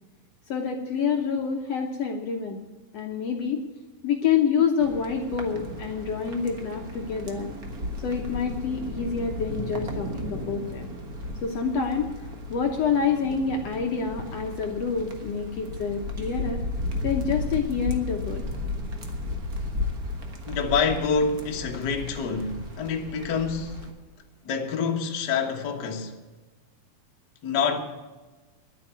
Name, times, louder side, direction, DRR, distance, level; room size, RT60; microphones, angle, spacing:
voice 1, 0.5-2.6 2.9-3.6 4.0-7.5 8.0-10.9 11.4-16.6 17.0-18.4, left 6 dB, 70° left, 1.5 m, -27 dB
sound 1, 4.8-23.9, left 2 dB, 90° right, 0.8 m, -34 dB
voice 2, 20.5-23.8 24.4-26.2 27.4-27.8, left 5 dB, 55° left, 1.2 m, -27 dB
11.0 x 9.4 x 9.0 m
omnidirectional pair, 4.2 m